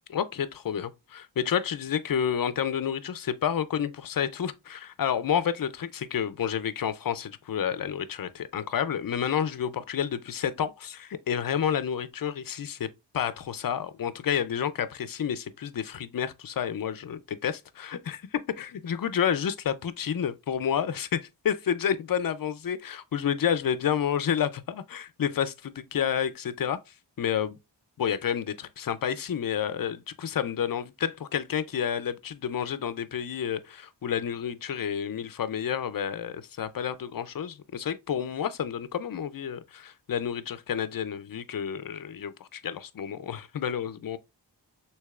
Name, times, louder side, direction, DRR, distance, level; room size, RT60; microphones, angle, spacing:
voice 1, 0.1-12.9 13.1-26.8 27.2-27.6 28.0-44.2, left 8 dB, 50° left, 0.5 m, -30 dB
6.4 x 2.9 x 2.3 m
wide cardioid pair, 90°, 45 cm